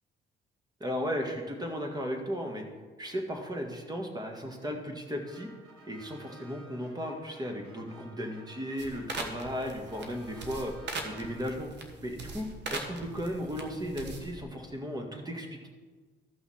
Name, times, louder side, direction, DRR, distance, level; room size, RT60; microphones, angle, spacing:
voice 1, 0.8-2.7 3.0-5.5 5.9-10.7 11.0-11.7 12.0-15.7, equal, 20° right, 3 dB, 1.7 m, -35 dB
sound 1, 5.2-11.8, right 2 dB, 85° right, 2.0 m, -55 dB
sound 2, 8.8-14.4, right 3 dB, 60° right, 1.4 m, -41 dB
14.5 x 5.7 x 4.3 m, 1.4 s
cardioid pair, 90°, 20 cm